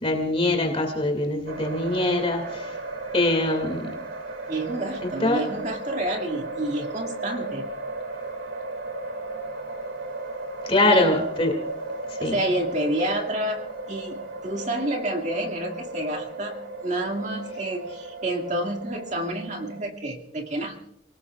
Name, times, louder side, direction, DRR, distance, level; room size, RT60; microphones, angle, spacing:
voice 1, 0.0-2.8 3.1-3.9 5.2-5.4 10.7-11.5 12.2-12.4, left 2 dB, 30° left, 3 dB, 2.4 m, -23 dB
sound 1, 1.5-19.9, right 2 dB, 70° right, 2.2 m, -35 dB
voice 2, 4.5-7.7 10.9-11.2 12.2-13.6 13.9-16.6 16.8-20.8, right 1 dB, 40° right, 3 dB, 2.2 m, -29 dB
29.0 x 19.0 x 2.4 m, 0.75 s
head